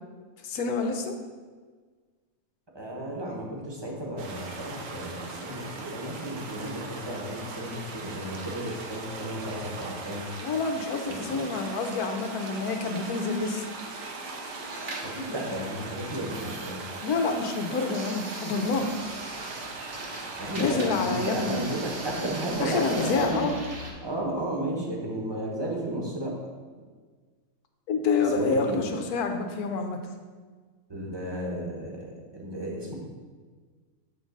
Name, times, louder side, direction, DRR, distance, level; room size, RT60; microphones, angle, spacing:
voice 1, 0.4-1.1 10.4-13.7 17.0-18.9 20.6-21.6 22.6-23.5 27.9-30.0, left 4 dB, 70° left, 5 dB, 1.2 m, -27 dB
voice 2, 2.7-10.2 11.1-11.4 15.0-16.8 20.4-23.5 24.0-26.3 28.2-29.0 30.9-32.0 32.3-32.9, right 1 dB, 15° right, -2 dB, 1.1 m, -33 dB
sound 1, 4.2-23.1, right 3 dB, 80° right, 1.4 m, -39 dB
sound 2, 14.6-23.9, right 1 dB, 40° right, 1.2 m, -41 dB
8.1 x 3.7 x 5.3 m, 1.5 s
omnidirectional pair, 1.8 m